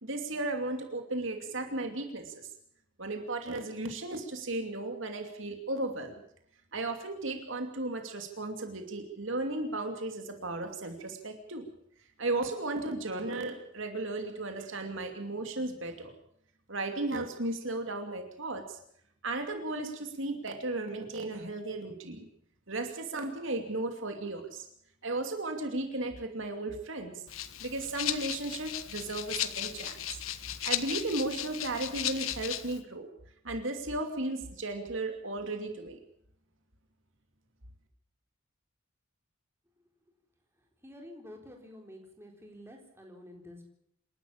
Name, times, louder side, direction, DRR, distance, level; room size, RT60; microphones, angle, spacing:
voice 1, 0.0-2.5 3.0-6.2 6.7-11.7 12.2-16.1 16.7-18.8 19.2-22.3 22.7-24.6 25.0-27.2 27.6-30.2 30.6-33.1 33.4-36.0, right 2 dB, 65° right, 5 dB, 2.7 m, -35 dB
Rattle (instrument), 27.3-32.8, left 11 dB, 80° left, 1.3 m, -36 dB
voice 2, 40.6-43.6, left 1 dB, 10° right, 1 dB, 3.9 m, -49 dB
27.5 x 12.5 x 8.8 m, 0.71 s
head